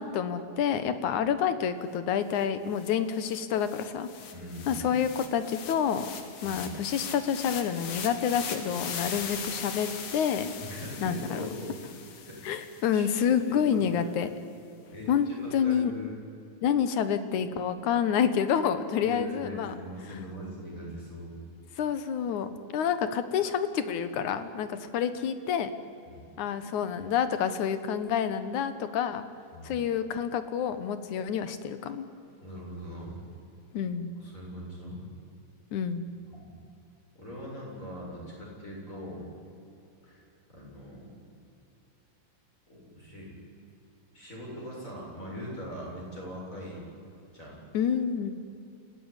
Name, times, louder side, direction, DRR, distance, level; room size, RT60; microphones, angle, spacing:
voice 1, 0.0-4.1 4.7-6.1 6.4-10.5 11.0-11.5 12.4-14.3 15.1-15.9 16.6-19.7 21.8-25.7 26.4-29.2 29.6-32.1 33.7-34.1 35.7-36.0 47.7-48.3, left 8 dB, 80° left, 11 dB, 2.7 m, -28 dB
sound 1, 2.4-2.5 2.8-13.1, left 6 dB, 60° left, 3.0 m, -40 dB
voice 2, 4.3-4.9 6.4-6.7 10.6-11.9 12.2-12.4 12.9-13.0 13.5-13.9 14.9-16.2 18.9-21.3 26.1-26.3 29.5-29.7 32.4-33.2 34.2-35.0 36.3-36.5 37.1-39.2 40.0-40.2 40.5-41.2 42.7-43.3 44.1-46.8 47.3-47.6, equal, 25° left, -3 dB, 8.0 m, -41 dB
28.5 x 16.0 x 9.9 m, 2.8 s
omnidirectional pair, 3.4 m